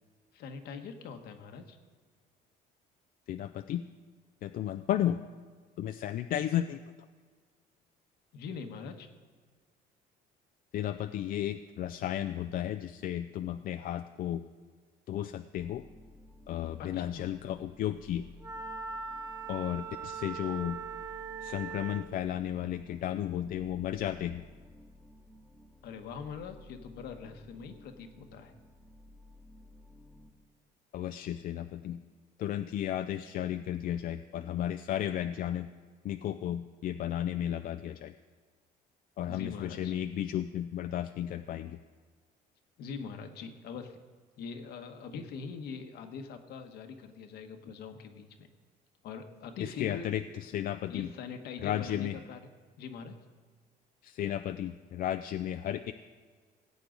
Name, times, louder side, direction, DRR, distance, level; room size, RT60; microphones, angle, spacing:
voice 1, 0.3-1.8 8.3-9.1 16.8-17.2 25.8-28.5 39.3-39.9 42.8-44.0 44.4-48.5 49.0-50.1 50.9-52.4 52.8-53.1, left 5 dB, 75° left, 6 dB, 1.2 m, -43 dB
voice 2, 3.3-3.8 4.4-5.2 5.8-6.8 10.7-14.4 15.1-15.8 16.5-18.3 19.5-20.8 21.4-24.4 30.9-32.0 32.4-35.7 36.0-38.1 39.2-41.8 49.6-51.1 51.6-52.2 54.0-55.9, left 11 dB, 55° left, 8 dB, 0.4 m, -34 dB
sound 1, 15.5-30.3, left 1 dB, 5° left, 1.2 m, -55 dB
Wind instrument woodwind instrument, 18.4-22.1, right 6 dB, 20° right, 0.8 m, -40 dB
17.0 x 8.4 x 3.9 m, 1.6 s
cardioid pair, 110°, 17 cm